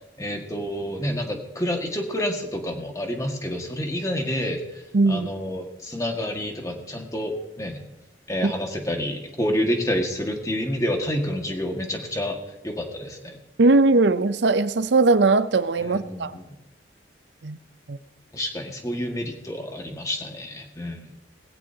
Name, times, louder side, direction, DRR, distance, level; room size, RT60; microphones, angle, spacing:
voice 1, 0.2-7.8 8.3-12.4 12.6-13.4 15.8-16.6 18.3-21.1, equal, 20° left, 2 dB, 1.8 m, -29 dB
voice 2, 4.9-5.3 8.4-8.5 13.6-16.3 17.4-17.6 17.9-18.0, right 3 dB, 75° right, 13 dB, 0.6 m, -19 dB
18.0 x 16.5 x 2.9 m, 0.94 s
head